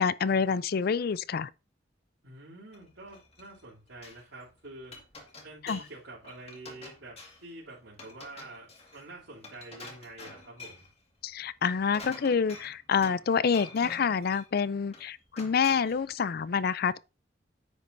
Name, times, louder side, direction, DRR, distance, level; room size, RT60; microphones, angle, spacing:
voice 1, 0.0-1.5 5.6-5.8 11.2-17.0, left 6 dB, 50° left, 0.4 m, -27 dB
voice 2, 2.2-4.9 5.4-10.9, right 2 dB, 85° right, 3.0 m, -47 dB
Glass, 2.7-4.2 4.6-6.0 6.2-7.5 7.9-10.9 11.5-13.3 13.5-14.5 14.9-16.0, left 3 dB, 35° left, 2.0 m, -47 dB
9.8 x 8.1 x 2.6 m
head